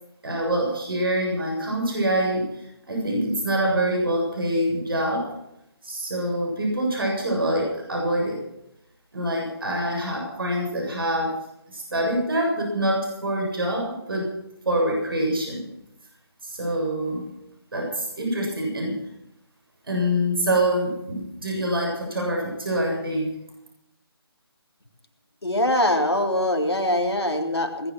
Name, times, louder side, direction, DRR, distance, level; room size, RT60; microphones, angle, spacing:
voice 1, 0.2-5.3 5.8-8.4 9.1-11.4 11.7-14.3 14.7-15.7 16.4-17.3 17.7-19.0 19.8-23.3, right 1 dB, 60° right, 0 dB, 7.1 m, -25 dB
voice 2, 25.4-27.9, left 1 dB, 80° left, 3 dB, 3.5 m, -23 dB
20.0 x 9.9 x 6.4 m, 0.82 s
figure-of-eight pair, 150°, 13 cm